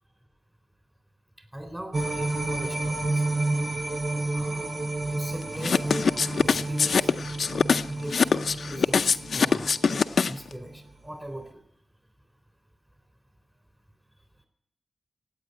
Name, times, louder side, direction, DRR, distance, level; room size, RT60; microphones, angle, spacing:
voice 1, 1.5-3.2 4.3-4.7 5.1-7.3 7.8-11.6, right 1 dB, 15° right, 6 dB, 3.6 m, -40 dB
sound 1, 1.9-10.3 10.7-10.8, right 2 dB, 40° right, 1.0 m, -31 dB
sound 2, 5.6-10.5, left 5 dB, 70° left, 0.6 m, -23 dB
16.5 x 9.1 x 9.0 m, 0.73 s
cardioid pair, 75°, 0 cm